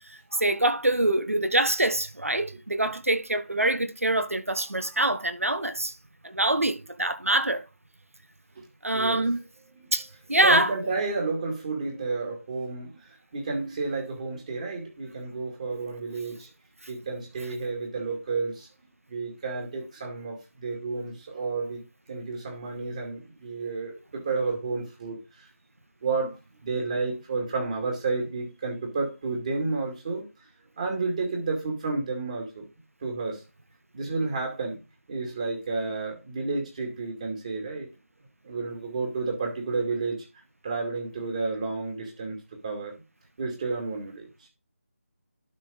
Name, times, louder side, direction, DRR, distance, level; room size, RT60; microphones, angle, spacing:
voice 1, 0.3-5.9 6.2-7.6 8.8-9.4 9.9-10.7, right 1 dB, 75° right, 1.4 m, -25 dB
voice 2, 8.9-9.3 10.4-13.0 13.3-16.5 16.9-18.7 19.1-21.8 22.1-25.5 26.0-26.3 26.6-30.3 30.8-32.7 33.0-33.4 33.9-34.8 35.1-37.9 38.4-40.2 40.6-42.4 42.6-42.9 43.4-44.3, right 3 dB, 30° right, 2.5 m, -31 dB
12.0 x 4.2 x 5.3 m
figure-of-eight pair, 160°, 8 cm